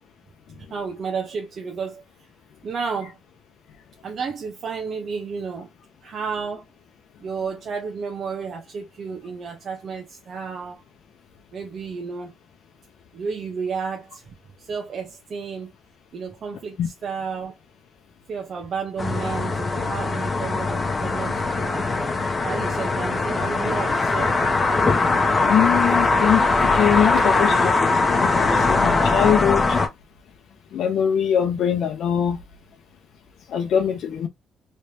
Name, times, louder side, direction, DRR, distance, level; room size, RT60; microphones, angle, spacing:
voice 1, 0.6-2.3 2.6-3.2 4.0-5.7 6.0-6.6 7.2-10.8 11.5-12.3 13.1-15.7 16.1-17.6 18.3-21.9 22.4-24.4, right 5 dB, 50° right, 0.8 m, -32 dB
sound 1, 19.0-29.9, left 3 dB, 30° left, 0.9 m, -21 dB
voice 2, 25.5-29.8 30.7-32.4 33.5-34.3, left 9 dB, 75° left, 0.6 m, -22 dB
3.3 x 3.2 x 2.8 m
cardioid pair, 115°, 0 cm